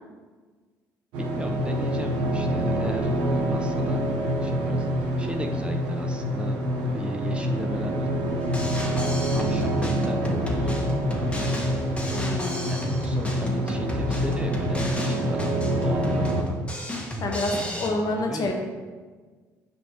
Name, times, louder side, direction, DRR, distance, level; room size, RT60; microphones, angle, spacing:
sound 1, 1.1-16.4, equal, 85° right, 1.0 m, -26 dB
voice 1, 1.2-4.1 4.4-8.1 8.8-10.7 12.7-16.6 17.5-18.5, right 1 dB, 15° right, 4 dB, 0.7 m, -36 dB
Drum kit, 8.4-17.9, equal, 15° left, 1.5 m, -32 dB
voice 2, 12.1-12.7 16.1-16.2 17.2-18.5, left 2 dB, 55° left, 2 dB, 1.2 m, -28 dB
7.7 x 5.2 x 3.0 m, 1.4 s
supercardioid pair, 65°, 8 cm